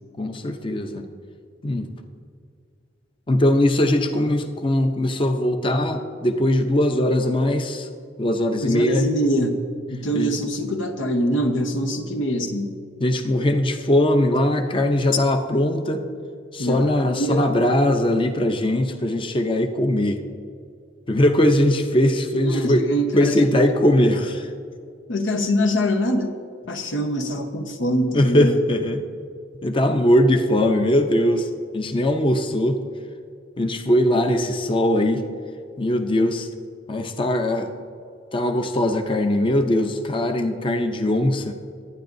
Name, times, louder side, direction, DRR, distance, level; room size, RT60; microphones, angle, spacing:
voice 1, 0.2-1.0 1.6-1.9 3.3-7.9 8.2-9.1 10.1-10.3 13.0-16.1 16.5-20.2 21.1-22.8 23.1-24.5 28.1-29.0 29.6-32.8 33.6-35.2 35.8-36.5 36.9-37.7 38.3-41.5, left 1 dB, 25° left, 6 dB, 0.6 m, -20 dB
voice 2, 8.6-9.6 9.9-12.7 16.6-17.5 22.3-23.6 25.1-26.3 26.7-28.6, equal, 85° left, 5 dB, 1.0 m, -24 dB
22.5 x 9.4 x 2.6 m, 2.3 s
head